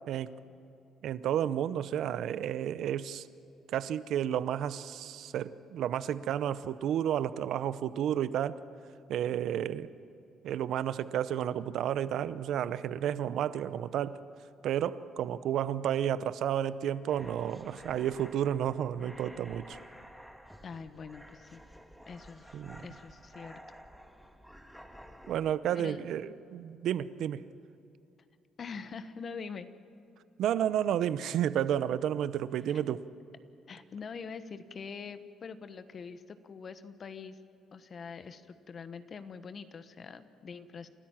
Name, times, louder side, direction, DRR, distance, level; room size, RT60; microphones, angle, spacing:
voice 1, 1.0-3.3 3.7-8.6 9.1-9.9 10.4-14.2 14.6-19.8 22.5-22.9 25.3-27.4 30.4-33.0, right 10 dB, 70° right, 15 dB, 0.7 m, -31 dB
sound 1, 17.1-25.5, equal, ahead, 1.8 m, -52 dB
voice 2, 20.6-21.6 22.1-23.6 25.7-26.0 28.6-29.7 32.7-32.8 33.7-37.4 37.7-40.9, left 5 dB, 50° left, 11 dB, 1.2 m, -44 dB
29.0 x 13.5 x 7.4 m, 2.7 s
supercardioid pair, 75°, 0 cm